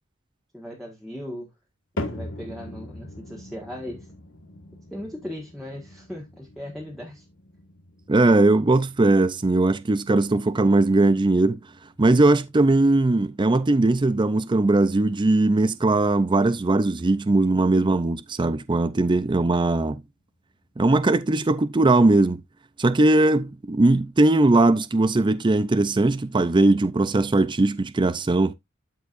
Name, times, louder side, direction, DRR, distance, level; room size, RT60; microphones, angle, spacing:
voice 1, 0.5-1.5 1.9-4.1 4.9-7.2, left 1 dB, ahead, 1.5 m, -38 dB
sound 1, 2.0-18.3 18.6-19.1 19.7-19.8 20.6-20.7, left 1 dB, 60° left, 1.6 m, -42 dB
voice 2, 8.1-11.6 12.0-20.0 20.8-22.4 22.8-28.5, right 2 dB, 20° right, 0.5 m, -19 dB
13.0 x 4.6 x 2.5 m
head